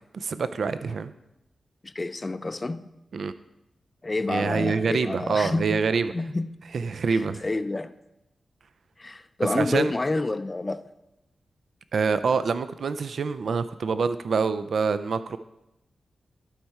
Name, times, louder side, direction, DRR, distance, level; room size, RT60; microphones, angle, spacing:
voice 1, 0.1-1.1 3.1-3.3 4.3-6.1 6.7-7.4 9.5-9.9 11.9-15.4, right 5 dB, 70° right, 12 dB, 0.3 m, -26 dB
voice 2, 1.8-2.9 4.0-5.8 6.1-6.5 7.1-7.9 9.0-10.8, left 2 dB, 30° left, 11 dB, 0.4 m, -29 dB
11.5 x 4.4 x 4.6 m, 0.90 s
cardioid pair, 60°, 0 cm